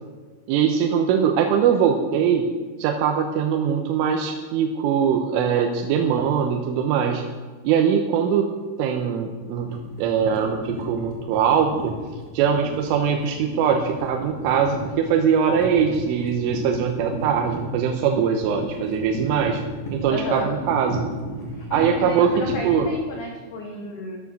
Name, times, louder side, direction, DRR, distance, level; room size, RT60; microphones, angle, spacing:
voice 1, 0.5-2.5 2.8-7.2 7.6-8.5 8.8-11.9 12.3-19.6 19.9-21.1 21.7-22.3 22.7-22.9, right 7 dB, 80° right, 3 dB, 3.4 m, -22 dB
sound 1, 9.4-22.9, right 1 dB, 45° left, 2.9 m, -34 dB
voice 2, 20.1-20.5 21.5-24.2, left 2 dB, 75° left, 2 dB, 1.8 m, -33 dB
14.0 x 12.0 x 6.1 m, 1.5 s
omnidirectional pair, 5.9 m